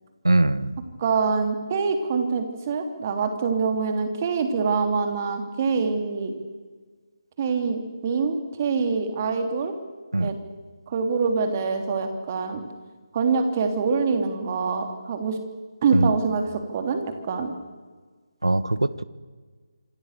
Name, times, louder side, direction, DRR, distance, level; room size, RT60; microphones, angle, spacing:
voice 1, 0.2-0.7 10.1-10.3 15.9-16.1 18.4-18.9, right 2 dB, 85° right, 16 dB, 1.4 m, -21 dB
voice 2, 1.0-6.3 7.4-9.7 10.2-10.4 10.9-12.6 13.1-15.4 15.8-17.5, right 5 dB, 30° right, 6 dB, 3.4 m, -25 dB
27.0 x 25.0 x 6.9 m, 1.5 s
figure-of-eight pair, 155°, 2 cm